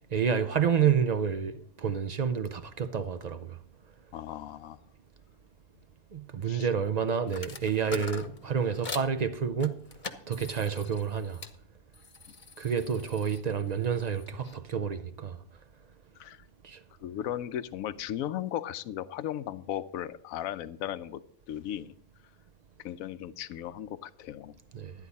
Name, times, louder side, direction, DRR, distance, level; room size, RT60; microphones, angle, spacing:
voice 1, 0.1-3.6 6.1-9.9 10.3-11.4 12.6-15.4 16.6-16.8 24.7-24.9, right 7 dB, 65° right, 0.4 m, -29 dB
voice 2, 4.1-4.8 6.4-6.7 16.2-16.4 17.0-21.2 21.5-21.9 22.8-24.5, left 11 dB, 80° left, 1.0 m, -36 dB
sound 1, 7.3-9.1 9.6-11.6 11.9-14.6, left 4 dB, 35° left, 1.0 m, -43 dB
13.0 x 9.8 x 4.1 m
omnidirectional pair, 1.5 m